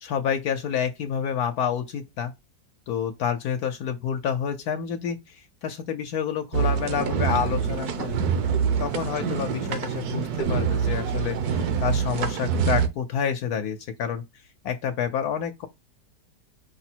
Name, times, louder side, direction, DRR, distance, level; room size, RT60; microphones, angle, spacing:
voice 1, 0.0-2.3 2.9-8.2 8.8-14.2 14.6-15.7, left 8 dB, 70° left, 1.1 m, -28 dB
sound 1, 6.5-12.9, right 6 dB, 70° right, 1.2 m, -25 dB
5.4 x 2.0 x 4.3 m
omnidirectional pair, 1.8 m